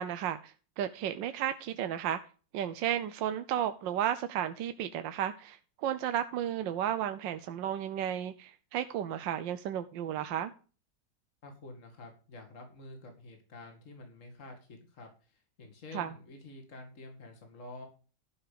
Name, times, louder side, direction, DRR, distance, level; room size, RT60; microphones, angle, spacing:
voice 1, 0.0-2.2 2.5-5.6 5.8-10.5 15.9-16.1, right 10 dB, 85° right, 10 dB, 1.4 m, -33 dB
voice 2, 11.4-17.9, left 2 dB, 45° left, 3 dB, 2.6 m, -49 dB
12.5 x 5.5 x 6.7 m, 0.36 s
omnidirectional pair, 2.0 m